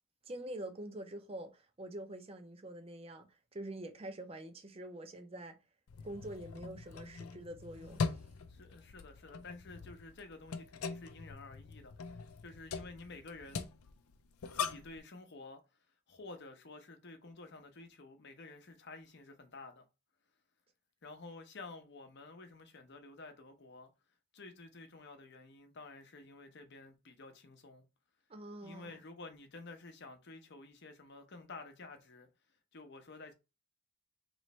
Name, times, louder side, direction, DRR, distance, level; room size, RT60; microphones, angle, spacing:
voice 1, 0.2-3.3 3.5-5.6 6.0-8.2 28.3-29.0, right 1 dB, 25° right, 0.6 m, -46 dB
sound 1, 5.9-15.0, left 5 dB, 80° left, 0.5 m, -42 dB
voice 2, 8.5-13.7 14.5-15.6 16.1-19.9 21.0-23.9 24.3-27.8 28.6-32.3 32.7-33.3, left 3 dB, 50° left, 0.8 m, -51 dB
3.1 x 3.1 x 4.2 m
head